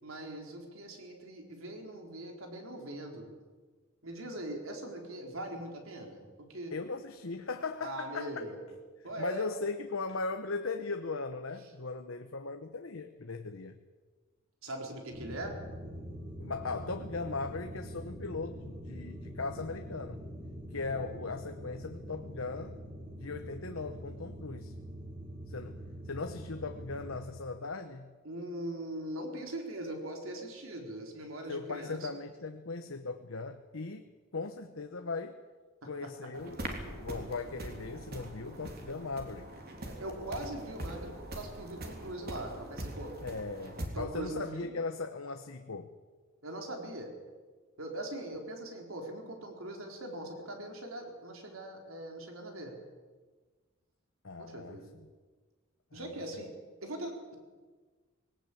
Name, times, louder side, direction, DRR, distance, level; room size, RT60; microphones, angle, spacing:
voice 1, 0.0-3.3 4.0-6.7 7.8-8.6 9.0-9.5 14.6-15.6 20.9-21.3 28.2-32.1 35.8-36.1 39.8-43.2 43.9-44.7 46.4-47.1 47.8-52.7 54.4-54.9 55.9-56.5 56.8-57.4, right 1 dB, 85° right, 2 dB, 4.2 m, -41 dB
voice 2, 6.7-8.4 9.2-13.8 16.4-20.3 20.7-22.8 23.2-24.8 25.5-28.1 31.5-35.4 35.9-39.5 43.2-45.9 54.2-55.1 55.9-56.4, left 3 dB, 80° left, 7 dB, 1.1 m, -38 dB
sound 1, 15.1-27.2, equal, 25° right, 4.5 m, -44 dB
sound 2, 36.3-43.9, right 1 dB, 50° right, 3.5 m, -42 dB
20.0 x 18.0 x 8.5 m, 1.4 s
head